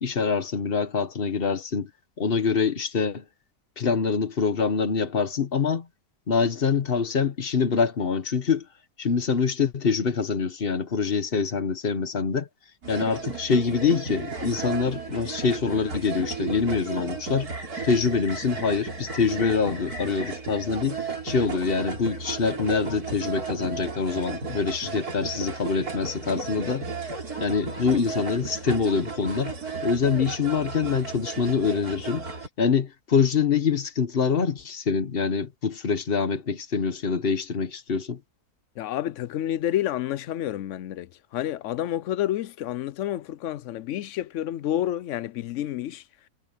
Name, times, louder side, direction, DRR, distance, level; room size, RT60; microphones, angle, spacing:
voice 1, 0.0-1.9 2.2-3.2 3.8-5.9 6.3-8.7 9.0-12.5 12.9-17.5 17.8-26.8 27.4-29.5 29.8-32.3 32.6-38.2, left 5 dB, 40° left, 1.2 m, -25 dB
sound 1, 12.8-32.5, right 4 dB, 60° right, 4.1 m, -34 dB
voice 2, 38.8-46.0, left 12 dB, 70° left, 0.7 m, -29 dB
omnidirectional pair, 1.8 m